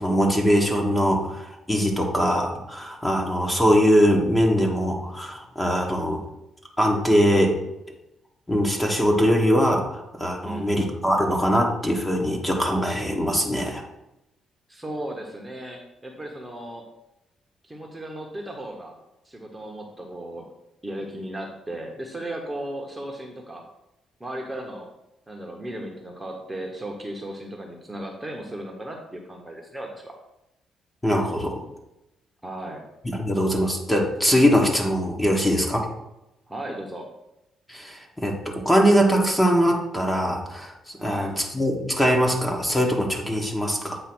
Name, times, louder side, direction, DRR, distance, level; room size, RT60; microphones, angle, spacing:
voice 1, 0.0-6.2 6.8-7.6 8.5-13.8 31.0-31.6 33.0-35.9 37.7-44.0, equal, 10° left, 1 dB, 1.3 m, -22 dB
voice 2, 10.4-10.8 14.7-16.8 17.6-19.0 19.2-20.5 20.8-23.6 24.2-24.9 25.3-30.1 32.4-32.8 36.5-37.1 41.0-41.3, right 1 dB, 10° right, 1 dB, 1.2 m, -36 dB
8.3 x 2.8 x 6.1 m, 0.90 s
cardioid pair, 90°, 0 cm